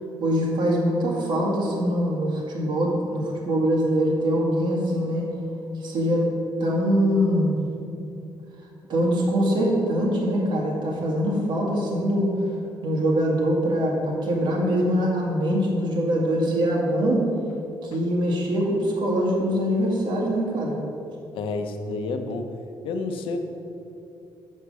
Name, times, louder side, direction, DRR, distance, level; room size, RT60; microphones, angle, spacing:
voice 1, 0.2-5.2 5.8-6.3 6.6-7.6 8.9-12.3 12.8-17.3 17.8-20.8, equal, 60° right, -2 dB, 2.1 m, -23 dB
voice 2, 21.3-22.5 22.8-23.4, left 3 dB, 85° left, 6 dB, 0.8 m, -29 dB
6.6 x 6.5 x 6.8 m, 2.9 s
cardioid pair, 145°, 9 cm